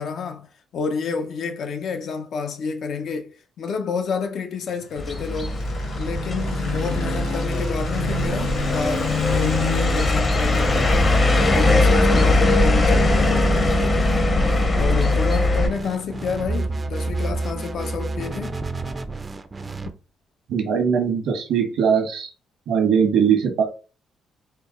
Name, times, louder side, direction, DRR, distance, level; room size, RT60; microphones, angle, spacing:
voice 1, 0.0-5.6 5.9-11.1 11.5-14.2 14.7-18.6, left 5 dB, 65° left, 0.6 m, -29 dB
sound 1, 4.8-19.0, left 3 dB, 85° left, 1.5 m, -31 dB
sound 2, 5.0-15.7, left 2 dB, 35° left, 0.8 m, -20 dB
sound 3, 13.0-19.9, right 3 dB, 25° right, 0.4 m, -31 dB
voice 2, 20.5-22.3 22.7-23.6, right 7 dB, 80° right, 1.2 m, -20 dB
4.2 x 2.0 x 3.7 m
cardioid pair, 90°, 0 cm